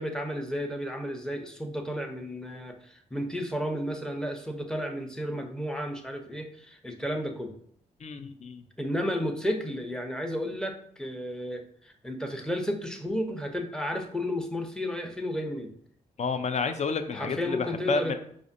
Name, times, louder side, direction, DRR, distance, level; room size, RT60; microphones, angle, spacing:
voice 1, 0.0-7.5 8.8-15.7 17.1-18.2, equal, 5° left, 4 dB, 0.7 m, -32 dB
voice 2, 8.0-8.6 16.2-18.2, left 4 dB, 50° left, 8 dB, 0.5 m, -30 dB
4.9 x 2.5 x 2.6 m, 0.64 s
supercardioid pair, 50°, 15 cm